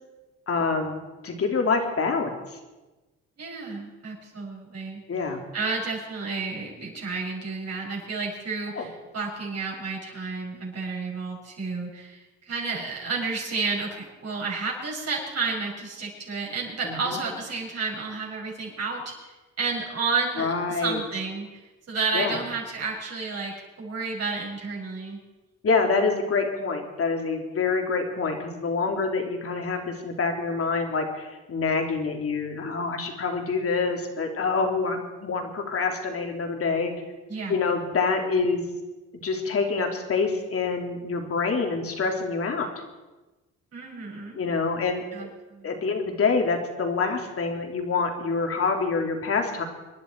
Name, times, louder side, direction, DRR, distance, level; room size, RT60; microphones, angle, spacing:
voice 1, 0.5-1.0 1.2-2.3 5.1-5.4 8.7-8.9 16.8-17.2 20.4-21.0 22.1-22.3 25.6-36.9 37.5-38.6 39.2-42.7 44.3-45.3 45.6-49.6, left 4 dB, 50° left, 3 dB, 3.1 m, -26 dB
voice 2, 3.4-5.0 5.5-19.1 19.6-21.6 21.9-25.2 37.3-37.5 43.7-44.4 45.1-45.7, right 4 dB, 55° right, -3 dB, 6.7 m, -31 dB
26.0 x 11.0 x 4.6 m, 1.1 s
cardioid pair, 90°, 30 cm